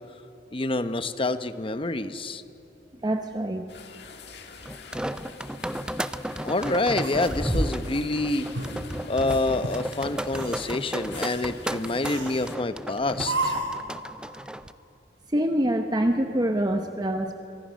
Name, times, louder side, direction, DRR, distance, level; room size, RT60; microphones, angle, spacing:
voice 1, 0.5-2.4 6.4-8.5 9.1-13.5, left 2 dB, 30° left, 10 dB, 0.8 m, -27 dB
voice 2, 3.0-3.7 15.3-17.3, right 1 dB, 20° right, 5 dB, 0.9 m, -25 dB
sound 1, 3.7-12.6, left 5 dB, 65° left, 1.8 m, -46 dB
sound 2, 4.7-14.7, right 1 dB, 5° right, 0.5 m, -33 dB
sound 3, 7.0-8.1 8.5-8.8 9.3-9.8 10.2-10.7 11.1-11.5 12.0-12.5 13.2-13.8, right 2 dB, 90° right, 3.7 m, -32 dB
25.0 x 24.5 x 6.4 m, 2.8 s
head